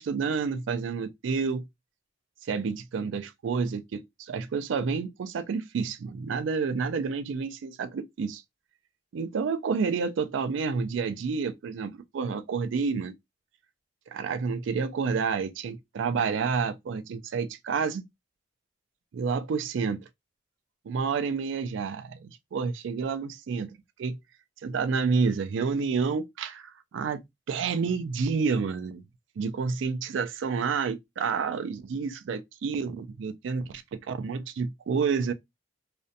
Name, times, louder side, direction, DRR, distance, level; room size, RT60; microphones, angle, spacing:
voice 1, 0.0-1.6 2.5-8.4 9.1-13.1 14.1-18.0 19.1-20.1 20.9-23.7 24.0-24.2 24.6-27.2 27.5-29.0 29.4-35.3, right 5 dB, 80° right, 0.3 m, -29 dB
2.5 x 2.1 x 2.6 m
head